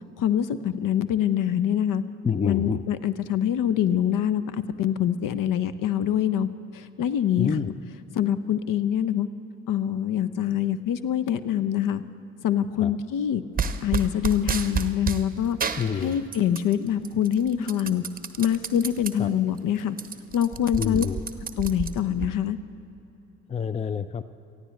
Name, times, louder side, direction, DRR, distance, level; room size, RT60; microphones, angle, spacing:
voice 1, 0.2-2.0 2.4-6.5 6.7-7.7 8.1-9.3 9.7-12.0 12.4-13.4 13.8-15.6 16.0-18.0 18.4-20.0 20.3-21.1 21.6-22.6, left 10 dB, 50° left, 14 dB, 0.8 m, -25 dB
voice 2, 2.2-2.8 7.4-7.7 12.8-12.9 15.8-16.2 19.2-19.3 20.8-21.2 23.5-24.2, left 7 dB, 15° left, 14 dB, 0.5 m, -27 dB
sound 1, 13.6-15.2 15.6-16.7 17.0-19.1 19.5-19.6 19.9-22.3, right 5 dB, 20° right, 1.0 m, -30 dB
29.0 x 14.5 x 3.3 m, 3.0 s
figure-of-eight pair, 50°, 41 cm